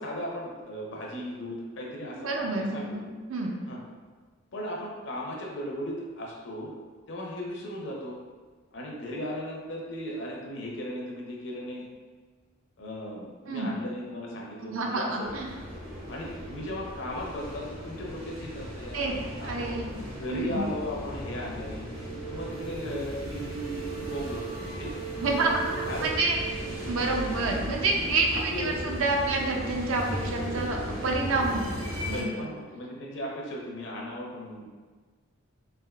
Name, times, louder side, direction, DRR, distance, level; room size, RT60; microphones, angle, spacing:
voice 1, 0.0-3.1 3.7-3.8 4.5-6.7 7.1-8.2 8.7-11.8 12.8-15.3 16.1-19.9 20.2-21.8 22.3-24.9 25.8-26.3 28.1-28.7 32.1-34.6, equal, 60° left, -2 dB, 0.6 m, -37 dB
voice 2, 2.1-3.6 13.5-13.7 14.6-15.5 18.9-20.0 20.3-20.6 25.2-30.8 31.0-32.5, right 3 dB, 70° right, 1 dB, 0.5 m, -29 dB
sound 1, 15.2-32.2, right 1 dB, 90° right, 1.2 m, -36 dB
3.4 x 2.6 x 2.3 m, 1.5 s
head